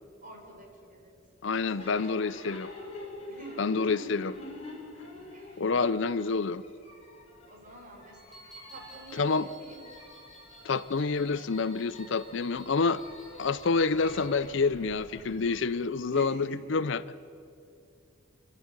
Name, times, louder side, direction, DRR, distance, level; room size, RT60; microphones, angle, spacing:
voice 1, 0.2-1.1 1.5-2.5 3.3-3.8 5.3-5.7 7.5-9.8 16.1-16.7, right 1 dB, 40° right, 1 dB, 4.6 m, -48 dB
voice 2, 1.4-2.7 3.6-4.4 5.6-6.6 9.1-9.5 10.6-13.0 13.4-17.0, left 4 dB, 60° left, 16 dB, 0.5 m, -28 dB
sound 1, 1.8-15.6, left 2 dB, 30° left, 4.9 m, -47 dB
sound 2, 8.1-14.3, right 1 dB, ahead, 3.9 m, -53 dB
27.0 x 12.5 x 9.0 m, 2.5 s
head